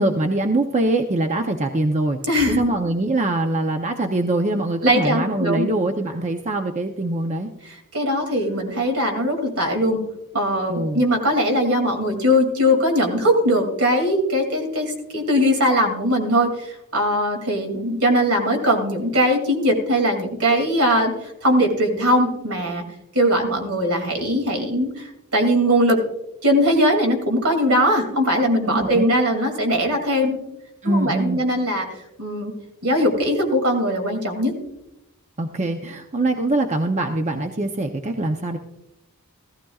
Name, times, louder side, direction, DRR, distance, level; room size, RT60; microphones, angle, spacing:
voice 1, 0.0-2.2 2.6-7.5 10.7-11.0 28.7-29.0 30.8-31.4 35.4-38.6, right 2 dB, 30° right, 5 dB, 0.7 m, -23 dB
voice 2, 2.2-2.6 4.8-5.7 7.9-10.0 10.3-22.8 23.1-26.0 26.4-30.4 30.8-31.9 32.2-32.5 32.8-34.5, equal, 70° right, 4 dB, 2.6 m, -20 dB
15.0 x 14.5 x 2.4 m, 0.88 s
head